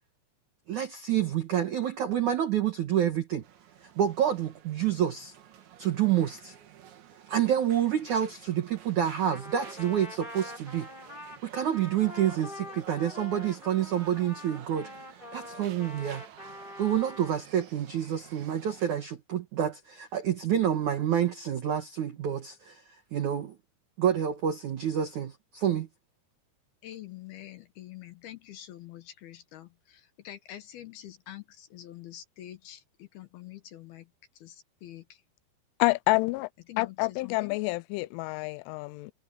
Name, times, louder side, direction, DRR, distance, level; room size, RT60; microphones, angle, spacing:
voice 1, 0.7-3.4 4.0-5.3 5.8-6.5 7.3-10.9 11.4-14.9 15.3-16.2 16.8-22.8 23.1-23.6 24.0-25.9, right 10 dB, 85° right, 1.7 m, -28 dB
sound 1, 3.4-19.0, right 10 dB, 70° right, 4.6 m, -51 dB
Trumpet, 9.3-17.4, left 1 dB, 10° left, 6.3 m, -45 dB
voice 2, 26.8-34.1 34.3-35.2 36.7-37.6, left 13 dB, 70° left, 2.5 m, -46 dB
voice 3, 35.8-36.5 36.8-39.1, left 22 dB, 85° left, 3.0 m, -28 dB
omnidirectional pair, 5.7 m